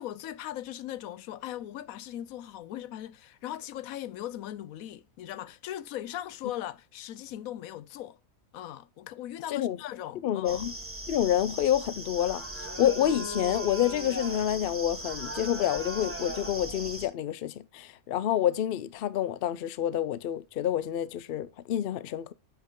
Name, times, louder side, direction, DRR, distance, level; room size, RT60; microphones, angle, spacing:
voice 1, 0.0-8.2 8.5-10.7, left 12 dB, 85° left, 1.0 m, -39 dB
voice 2, 10.2-10.7 11.1-12.4 12.8-22.3, left 11 dB, 60° left, 0.6 m, -28 dB
sound 1, 10.5-17.1, right 1 dB, 10° right, 1.5 m, -38 dB
9.1 x 5.7 x 3.7 m
omnidirectional pair, 1.5 m